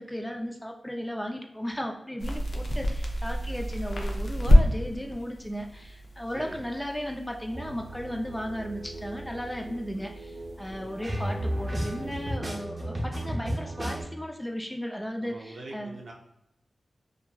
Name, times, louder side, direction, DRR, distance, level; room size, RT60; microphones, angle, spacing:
voice 1, 0.0-15.9, equal, 10° left, 3 dB, 0.3 m, -35 dB
sound 1, 2.2-12.4, equal, 75° left, 0.4 m, -29 dB
sound 2, 7.5-14.0, right 1 dB, 35° right, 0.6 m, -34 dB
voice 2, 10.7-11.0 15.2-16.1, right 2 dB, 75° right, -1 dB, 0.6 m, -43 dB
2.8 x 2.4 x 2.2 m, 0.82 s
wide cardioid pair, 90°, 0 cm